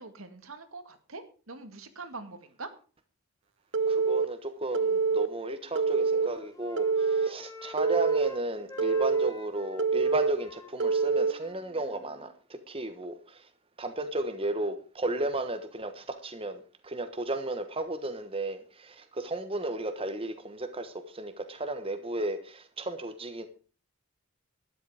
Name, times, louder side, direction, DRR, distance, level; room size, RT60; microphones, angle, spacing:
voice 1, 0.0-2.7, right 3 dB, 75° right, 2.0 m, -43 dB
Telephone, 3.7-4.2 4.7-5.3 5.7-6.3 6.8-7.3 7.8-8.3 8.8-9.3 9.8-10.3 10.8-11.3, right 4 dB, 55° right, 0.7 m, -25 dB
voice 2, 3.8-13.5 13.8-23.5, right 2 dB, 25° right, 1.2 m, -34 dB
Wind instrument woodwind instrument, 5.7-8.4 8.7-12.3, left 2 dB, 15° left, 1.8 m, -48 dB
12.5 x 10.5 x 4.8 m
head